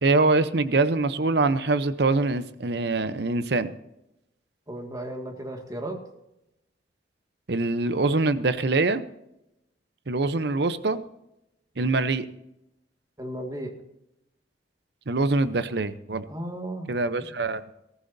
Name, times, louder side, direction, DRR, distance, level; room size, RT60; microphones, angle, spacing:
voice 1, 0.0-3.7 7.5-9.0 10.1-11.0 11.8-12.3 15.1-16.2 16.9-17.6, right 3 dB, 60° right, 13 dB, 0.8 m, -24 dB
voice 2, 4.7-6.0 13.2-13.7 16.3-16.9, right 1 dB, 20° right, 3 dB, 2.1 m, -34 dB
20.0 x 14.0 x 2.7 m, 0.86 s
head